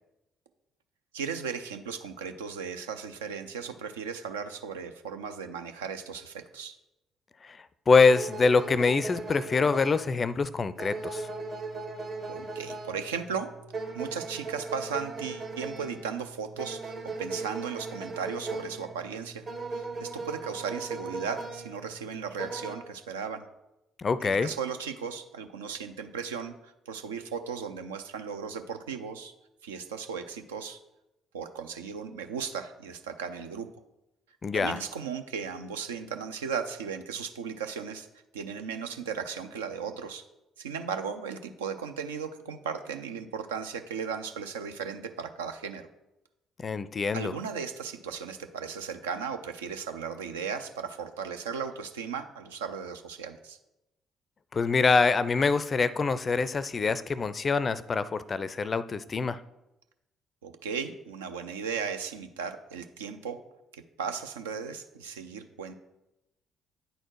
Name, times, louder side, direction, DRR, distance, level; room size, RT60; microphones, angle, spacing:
voice 1, 1.1-6.8 12.3-13.5 13.9-19.4 19.7-23.4 24.2-29.3 29.6-30.8 31.3-33.7 34.5-38.1 38.3-40.2 40.6-45.9 47.1-53.6 60.4-63.4 63.7-65.7, right 6 dB, 75° right, 7 dB, 0.4 m, -36 dB
voice 2, 7.9-11.3 24.0-24.5 34.4-34.8 46.6-47.3 54.5-59.4, left 4 dB, 35° left, 15 dB, 0.4 m, -25 dB
sound 1, 8.0-22.8, right 3 dB, 50° right, 1.3 m, -38 dB
9.1 x 4.2 x 4.6 m, 0.94 s
figure-of-eight pair, 45°, 0 cm